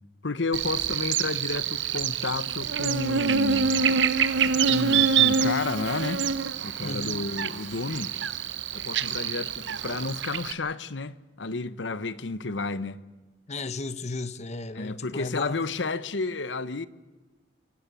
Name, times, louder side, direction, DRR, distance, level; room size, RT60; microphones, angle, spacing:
voice 1, 0.2-3.9 4.6-6.2 6.6-8.1 8.7-13.0 14.8-16.9, left 3 dB, 85° left, 1.0 m, -31 dB
Buzz, 0.5-10.5, right 6 dB, 80° right, 1.0 m, -26 dB
voice 2, 6.8-7.2 13.5-15.6, left 3 dB, 40° left, 1.0 m, -35 dB
26.0 x 15.5 x 9.1 m
head